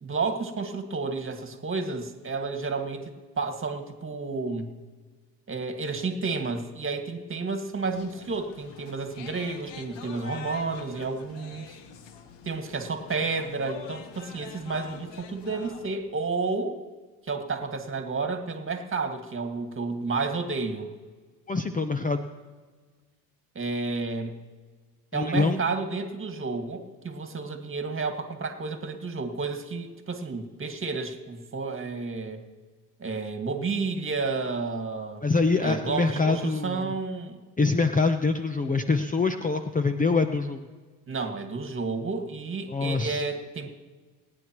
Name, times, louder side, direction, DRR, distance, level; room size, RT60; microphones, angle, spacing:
voice 1, 0.0-3.1 3.4-4.7 5.5-11.8 12.4-16.8 17.2-20.9 23.6-24.4 25.1-32.4 33.0-35.2 35.6-37.4 41.1-43.7, right 4 dB, 25° right, 5 dB, 2.0 m, -31 dB
sound 1, 7.9-15.9, left 7 dB, 65° left, 1.4 m, -45 dB
voice 2, 21.5-22.2 25.1-25.6 35.2-37.0 37.6-40.7 42.7-43.2, left 3 dB, 20° left, 8 dB, 0.8 m, -25 dB
27.0 x 9.8 x 3.1 m, 1.4 s
supercardioid pair, 75°, 46 cm